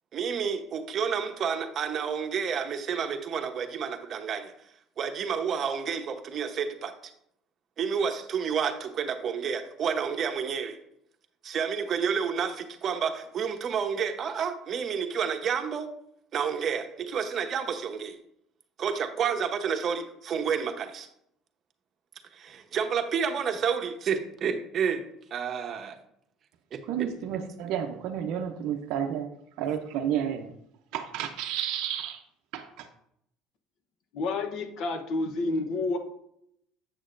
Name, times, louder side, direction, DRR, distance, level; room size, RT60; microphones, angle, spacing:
voice 1, 0.1-4.5 5.0-6.9 7.8-10.8 11.4-15.9 16.3-18.2 18.8-21.1 22.3-25.0 25.3-26.0 26.7-27.1, right 7 dB, 45° right, 5 dB, 0.9 m, -30 dB
voice 2, 26.9-29.3 29.6-30.5 30.9-32.2 32.5-32.9, right 9 dB, 70° right, 3 dB, 0.6 m, -31 dB
voice 3, 34.1-36.0, left 3 dB, 65° left, 6 dB, 0.9 m, -29 dB
7.9 x 6.3 x 2.5 m, 0.73 s
supercardioid pair, 95°, 0 cm